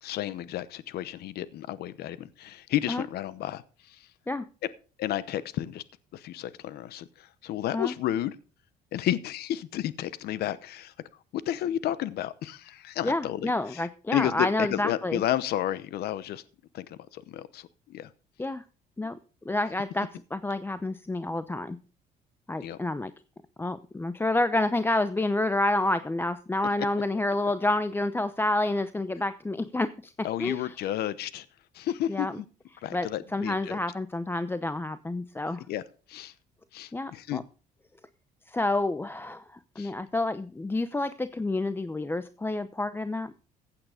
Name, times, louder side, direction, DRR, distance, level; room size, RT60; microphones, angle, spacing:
voice 1, 0.0-4.1 5.0-5.8 6.1-8.4 8.9-10.9 11.3-16.4 16.7-18.1 22.6-22.8 30.2-31.5 31.7-32.4 32.8-33.8 35.7-35.8 36.1-36.3 36.7-37.4 39.8-39.9, left 12 dB, 70° left, 16 dB, 0.9 m, -32 dB
voice 2, 13.0-15.2 18.4-18.6 19.0-19.2 19.4-21.8 22.5-23.1 23.6-30.1 30.4-30.7 32.1-32.3 32.9-35.6 36.9-37.4 38.5-43.3, left 2 dB, 15° left, 13 dB, 0.7 m, -29 dB
15.5 x 8.8 x 5.0 m, 0.37 s
cardioid pair, 110°, 17 cm